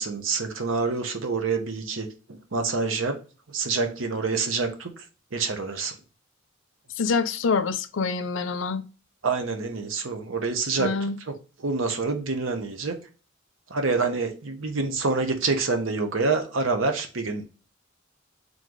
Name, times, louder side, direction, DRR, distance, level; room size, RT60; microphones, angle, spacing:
voice 1, 0.0-3.2 3.5-5.0 5.3-5.9 9.2-11.3 11.6-13.0 13.7-17.5, right 4 dB, 85° right, 0.9 m, -27 dB
voice 2, 7.0-8.8 10.8-11.2, left 4 dB, 70° left, 0.5 m, -26 dB
3.8 x 3.1 x 3.8 m
head